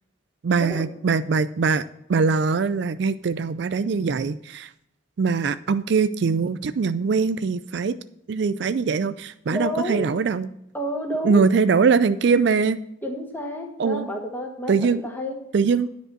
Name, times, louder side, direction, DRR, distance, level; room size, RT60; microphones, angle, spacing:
voice 1, 0.4-1.8 2.1-4.7 5.2-8.0 8.3-10.5 11.2-12.8 13.8-14.1 14.7-15.0 15.5-15.9, right 5 dB, 60° right, 14 dB, 0.4 m, -22 dB
voice 2, 9.5-10.1 10.7-11.4 13.0-15.4, equal, 10° left, 1 dB, 1.7 m, -30 dB
10.0 x 5.3 x 7.6 m, 0.79 s
head